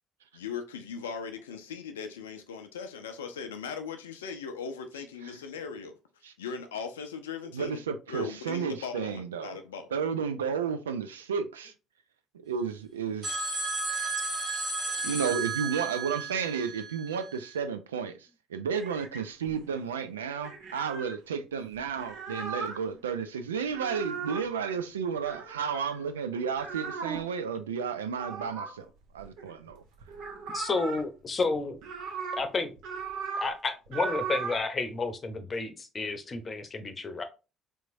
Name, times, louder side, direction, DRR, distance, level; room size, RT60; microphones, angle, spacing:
voice 1, 0.3-6.0 6.4-7.8 8.1-9.9, left 6 dB, 85° left, 0.4 m, -39 dB
voice 2, 7.5-9.6 9.9-11.7 12.5-13.3 15.0-28.9 29.1-29.8, right 6 dB, 85° right, 0.3 m, -32 dB
sound 1, 13.2-17.6, right 3 dB, 55° right, 1.7 m, -33 dB
sound 2, 18.7-19.8 20.4-21.1 21.7-22.8 23.6-24.5 25.3-26.1 26.6-27.3 28.2-29.7 30.0-31.0 31.5-32.5 32.8-33.5 33.9-34.6, right 5 dB, 70° right, 0.7 m, -37 dB
voice 3, 30.5-31.8 32.4-32.7 33.4-37.2, left 3 dB, 35° left, 0.7 m, -31 dB
3.4 x 3.0 x 2.6 m
hypercardioid pair, 55°, 0 cm